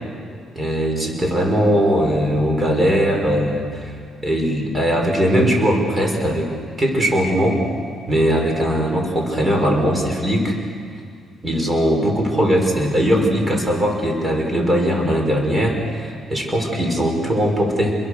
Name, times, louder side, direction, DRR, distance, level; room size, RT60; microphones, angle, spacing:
voice 1, 0.6-3.9 4.2-6.5 6.8-7.6 8.1-10.6 11.4-18.0, equal, 20° right, 2 dB, 5.9 m, -19 dB
27.0 x 22.5 x 6.7 m, 2.3 s
cardioid pair, 90°, 0 cm